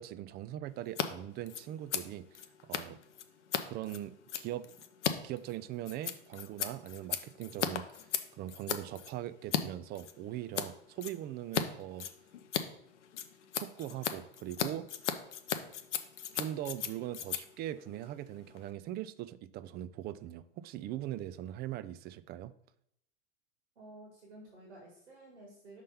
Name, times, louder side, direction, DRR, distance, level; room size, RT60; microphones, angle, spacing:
voice 1, 0.0-3.0 3.7-4.7 5.2-8.0 8.3-12.1 13.6-14.9 16.3-22.5, right 12 dB, 30° right, 0.3 m, -41 dB
Scissors, 0.8-1.1 1.3-9.6 9.9-10.7 11.0-11.6 11.9-18.7, left 9 dB, 85° left, 0.7 m, -37 dB
voice 2, 23.8-25.8, right 1 dB, 85° right, 1.8 m, -52 dB
5.4 x 3.6 x 5.6 m
hypercardioid pair, 95°, 35 cm